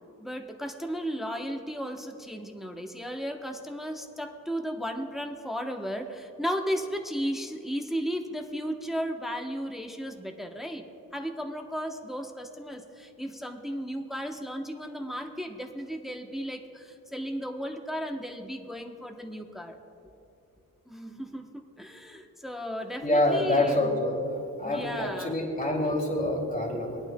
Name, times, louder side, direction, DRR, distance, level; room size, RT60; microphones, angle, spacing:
voice 1, 0.2-10.8 11.1-19.8 20.9-24.0 24.6-25.4, equal, ahead, 3 dB, 0.9 m, -35 dB
voice 2, 23.0-24.2 24.6-27.1, left 1 dB, 25° left, -2 dB, 2.7 m, -26 dB
23.0 x 8.8 x 2.3 m, 2.8 s
cardioid pair, 70°, 32 cm